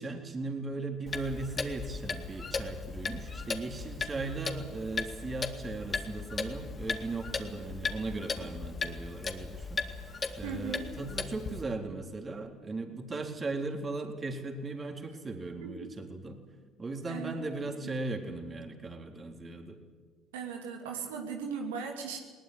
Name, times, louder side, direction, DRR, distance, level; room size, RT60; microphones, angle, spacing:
voice 1, 0.0-9.8 10.4-16.4 16.8-19.8, right 3 dB, 30° right, 3 dB, 3.8 m, -37 dB
Clock, 1.1-11.6, left 4 dB, 35° left, 2.3 m, -37 dB
voice 2, 10.4-10.9 15.6-15.9 17.1-17.4 20.3-22.2, right 6 dB, 90° right, 2 dB, 2.7 m, -38 dB
20.0 x 19.0 x 9.9 m, 1.4 s
hypercardioid pair, 65°, 0 cm